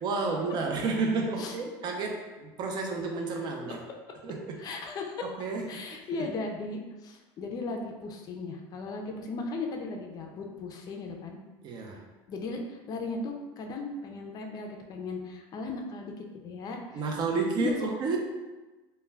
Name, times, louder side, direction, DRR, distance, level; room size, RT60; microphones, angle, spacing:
voice 1, 0.0-3.8 4.2-4.6 5.2-6.3 11.6-12.0 16.9-18.2, right 4 dB, 40° right, 1 dB, 0.5 m, -31 dB
voice 2, 4.6-5.3 5.7-11.4 12.3-17.0 17.6-17.7, left 3 dB, 35° left, 2 dB, 0.4 m, -37 dB
2.2 x 2.1 x 3.3 m, 1.2 s
supercardioid pair, 120°, 11 cm